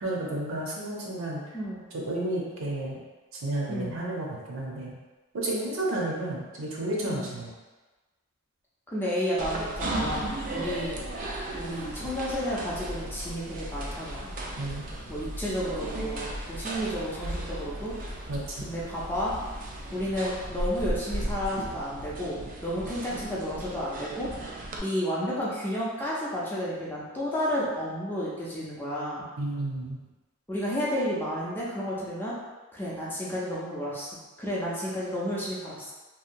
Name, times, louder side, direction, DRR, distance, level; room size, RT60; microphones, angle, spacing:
voice 1, 0.0-1.4 1.9-3.0 3.3-4.9 5.3-7.5 14.6-14.9 18.3-18.6 29.4-30.0, right 1 dB, 70° right, -4 dB, 0.6 m, -31 dB
voice 2, 3.7-4.0 7.1-7.4 8.9-11.0 11.5-14.3 15.1-17.9 18.6-19.3 19.9-24.3 24.8-29.3 30.5-32.3 32.7-35.9, equal, 10° left, -7 dB, 0.5 m, -32 dB
sound 1, 9.4-20.5, equal, 80° left, 0.6 m, -41 dB
sound 2, 9.4-24.8, right 1 dB, 40° right, 0.3 m, -36 dB
2.8 x 2.2 x 2.6 m, 1.2 s
head